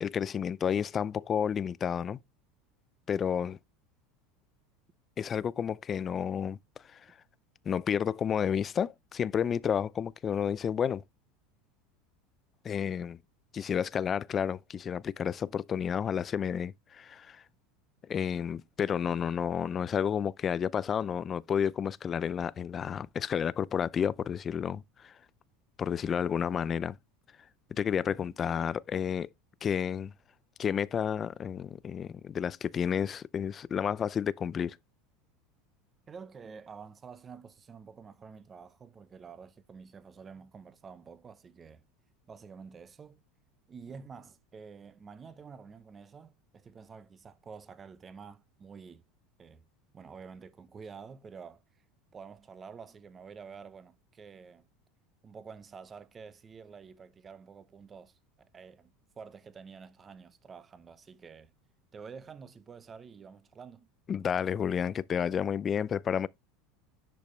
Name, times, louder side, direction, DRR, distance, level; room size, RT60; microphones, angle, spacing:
voice 1, 0.0-2.2 3.1-3.6 5.2-6.6 6.9-7.0 7.7-11.0 12.6-13.2 13.5-17.4 18.1-25.1 25.8-27.0 27.7-29.3 29.6-30.1 30.6-34.8 64.1-66.3, left 8 dB, 30° left, 0.4 m, -31 dB
voice 2, 36.1-41.8 42.3-43.2 43.7-49.0 49.4-49.6 49.9-51.6 52.1-54.6 55.2-61.5 61.9-63.9, right 5 dB, 25° right, 0.8 m, -49 dB
10.5 x 5.1 x 3.2 m
supercardioid pair, 130°, 0 cm